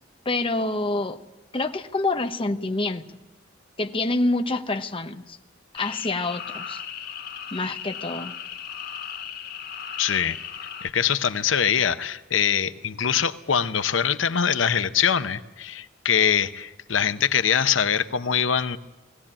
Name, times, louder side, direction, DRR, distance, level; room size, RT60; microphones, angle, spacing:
voice 1, 0.2-1.2 1.5-3.0 3.8-5.4 5.7-6.8 7.5-8.3, left 2 dB, 30° left, 7 dB, 1.0 m, -27 dB
sound 1, 5.7-10.9, left 8 dB, 55° left, 2.1 m, -36 dB
voice 2, 10.0-10.4 10.8-18.8, left 8 dB, 80° left, 12 dB, 0.8 m, -23 dB
20.0 x 16.5 x 8.8 m, 1.1 s
head